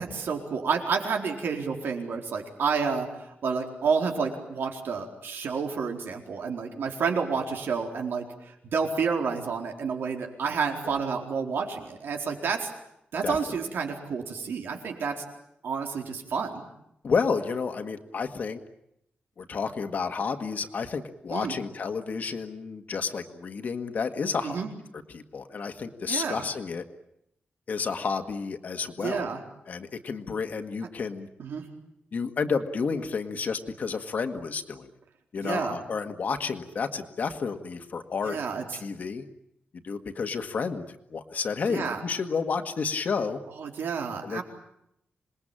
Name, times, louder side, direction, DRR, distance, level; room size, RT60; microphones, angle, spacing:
voice 1, 0.0-12.7 13.1-15.2 15.6-16.7 21.3-21.5 24.4-24.7 26.1-26.5 29.0-29.4 31.4-31.6 35.4-35.8 38.2-38.6 41.7-42.0 43.5-44.4, right 5 dB, 90° right, 2 dB, 4.3 m, -30 dB
voice 2, 13.2-13.6 17.0-18.6 19.4-24.6 25.1-26.8 27.7-29.3 29.7-31.3 32.1-34.9 35.3-38.4 38.8-39.2 39.8-43.4 44.2-44.4, left 5 dB, 50° left, 6 dB, 1.8 m, -31 dB
27.0 x 21.0 x 8.9 m, 0.80 s
wide cardioid pair, 175°, 4 cm